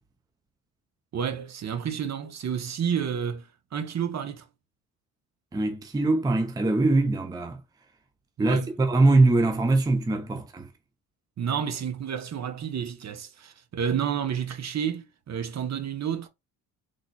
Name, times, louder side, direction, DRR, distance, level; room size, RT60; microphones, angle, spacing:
voice 1, 1.1-4.5 8.4-8.7 11.4-16.3, right 8 dB, 40° right, 1.0 m, -30 dB
voice 2, 5.5-7.6 8.4-10.7, right 2 dB, 10° right, 0.6 m, -22 dB
3.7 x 3.4 x 2.3 m
hypercardioid pair, 70°, 43 cm